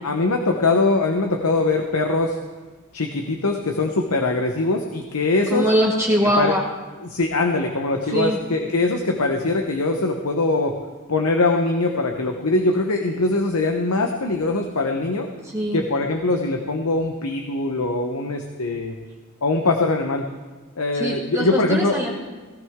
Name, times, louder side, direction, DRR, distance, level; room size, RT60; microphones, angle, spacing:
voice 1, 0.0-2.4 2.9-5.7 6.4-6.5 7.0-10.8 11.1-15.3 15.7-19.0 19.4-20.2 20.8-22.1, left 2 dB, 75° left, 3 dB, 1.0 m, -22 dB
voice 2, 5.5-6.6 8.1-8.4 15.4-15.9 20.9-22.1, equal, 15° right, -2 dB, 1.7 m, -22 dB
17.0 x 14.0 x 3.7 m, 1.3 s
head